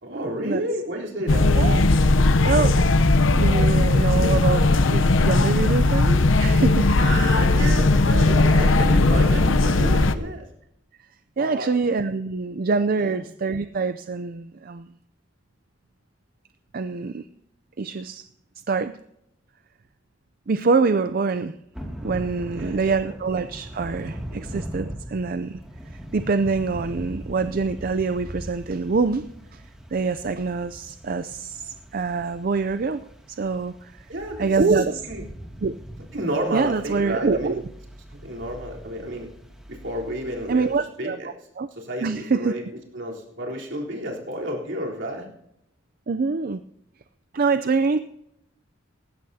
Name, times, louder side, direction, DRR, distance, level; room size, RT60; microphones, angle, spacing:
voice 1, 0.0-1.6 7.0-10.4 11.4-11.7 13.0-13.2 22.5-23.0 24.0-24.5 34.1-35.2 36.1-37.6 38.1-39.3 39.7-40.7 41.0-41.3 41.7-42.6 42.9-45.3, right 1 dB, 70° right, -2 dB, 3.7 m, -31 dB
sound 1, 1.3-10.1, left 2 dB, 90° left, 0.8 m, -18 dB
voice 2, 2.4-2.8 3.4-6.9 8.8-9.0 11.4-14.9 16.7-17.2 17.8-18.3 18.7-19.0 20.5-21.6 22.0-25.6 25.9-29.6 29.9-34.0 34.4-35.0 35.6-35.7 36.5-37.6 40.5-41.2 41.6-41.7 42.0-42.6 46.1-46.6 47.3-48.0, right 4 dB, 50° right, 11 dB, 0.5 m, -25 dB
Thunder / Rain, 21.7-40.8, equal, 5° right, 2.3 m, -40 dB
18.5 x 15.5 x 2.8 m, 0.80 s
head